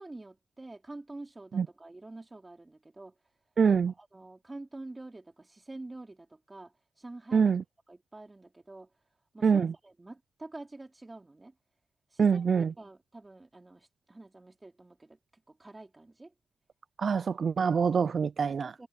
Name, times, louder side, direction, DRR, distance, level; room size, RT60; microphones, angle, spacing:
voice 1, 0.0-3.1 3.9-7.5 7.9-8.9 9.3-11.5 12.1-16.3 18.5-18.9, right 2 dB, 20° right, 3.9 m, -47 dB
voice 2, 3.6-3.9 7.3-7.6 9.4-9.7 12.2-12.7 17.0-18.7, right 6 dB, 45° right, 0.5 m, -25 dB
cardioid pair, 110°, 0 cm